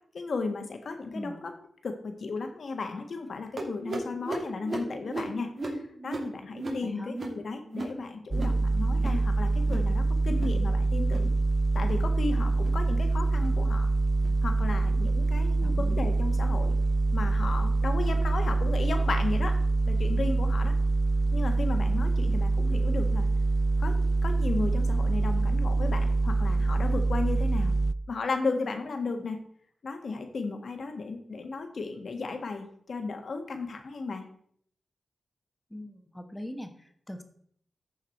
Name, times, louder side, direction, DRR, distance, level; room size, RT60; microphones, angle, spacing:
voice 1, 0.1-1.4 1.8-11.3 11.7-13.9 14.4-16.7 17.1-19.6 19.9-20.7 21.3-23.3 23.8-27.7 28.1-29.4 29.8-34.2, left 3 dB, 70° left, 6 dB, 1.5 m, -34 dB
sound 1, 3.6-8.6 8.9-9.3 9.5-9.9 10.2-10.6 11.0-11.3 11.7-12.1 12.5-12.8 13.3-13.6 14.1-14.4 15.0-15.2 15.9-16.0 16.7-16.8, right 2 dB, 55° right, 2.7 m, -37 dB
voice 2, 6.8-7.2 15.6-16.1 35.7-37.2, left 1 dB, 10° left, 6 dB, 1.4 m, -41 dB
sound 2, 8.3-27.9, right 2 dB, 30° right, 0.3 m, -25 dB
13.5 x 4.8 x 4.5 m, 0.65 s
cardioid pair, 65°, 0 cm